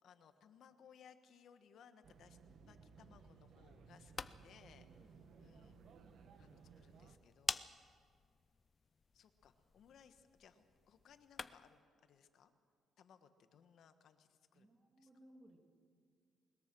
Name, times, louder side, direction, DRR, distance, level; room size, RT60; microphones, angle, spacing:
voice 1, 0.0-2.4 2.7-5.8 6.4-7.6 9.1-12.5 13.0-14.7 15.0-15.1, left 7 dB, 65° left, 9 dB, 1.3 m, -65 dB
sound 1, 2.0-7.2, right 5 dB, 60° right, 1.3 m, -61 dB
sound 2, 3.8-11.8, left 5 dB, 30° left, 0.5 m, -49 dB
voice 2, 4.9-5.2 6.7-6.9 14.5-15.6, right 1 dB, 20° right, 3 dB, 2.3 m, -64 dB
21.0 x 21.0 x 6.2 m, 2.2 s
cardioid pair, 125°, 0 cm